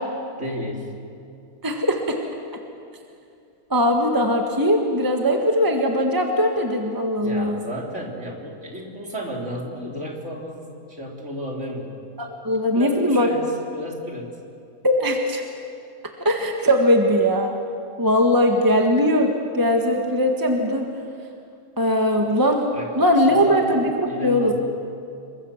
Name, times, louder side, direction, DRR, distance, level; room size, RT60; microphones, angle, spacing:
voice 1, 0.4-1.0 7.2-12.1 12.7-14.4 22.7-23.7 24.1-24.5, equal, 50° right, 0 dB, 3.8 m, -33 dB
voice 2, 1.6-2.2 3.7-7.6 12.2-13.3 14.8-15.4 16.2-17.5 18.0-20.9 21.8-22.6 23.0-24.5, equal, 15° right, 3 dB, 1.6 m, -20 dB
27.5 x 23.5 x 7.4 m, 2.5 s
omnidirectional pair, 1.6 m